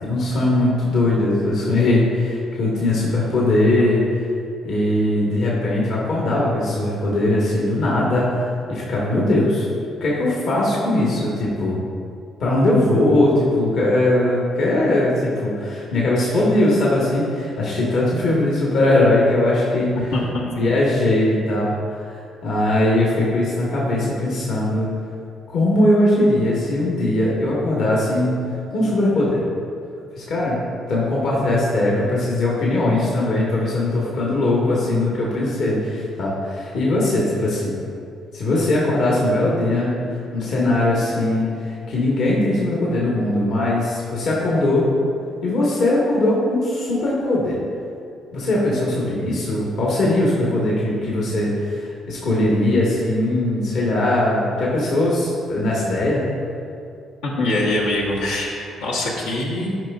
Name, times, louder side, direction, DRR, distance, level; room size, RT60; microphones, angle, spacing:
voice 1, 0.0-4.0 4.6-9.7 10.0-11.8 12.4-19.9 20.5-24.9 25.5-28.4 28.7-29.4 30.1-30.6 30.9-37.7 38.3-40.0 40.3-44.9 45.4-47.6 48.3-56.3, left 1 dB, 65° left, -5 dB, 1.2 m, -20 dB
voice 2, 20.0-20.5 57.2-59.7, left 1 dB, 85° left, -5 dB, 0.9 m, -23 dB
9.2 x 5.2 x 2.3 m, 2.4 s
hypercardioid pair, 50°, 0 cm